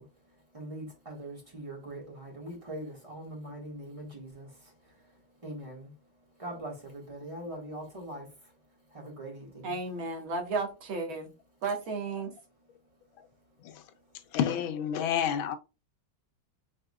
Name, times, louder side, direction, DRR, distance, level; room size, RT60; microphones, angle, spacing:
voice 1, 0.0-6.0 6.3-9.7 12.6-12.7 14.1-14.2, right 1 dB, 15° right, 1.6 m, -43 dB
voice 2, 9.6-11.3 11.6-12.3, right 3 dB, 85° right, 2.2 m, -33 dB
voice 3, 14.3-15.6, left 9 dB, 80° left, 1.5 m, -29 dB
5.9 x 3.6 x 2.3 m
omnidirectional pair, 2.2 m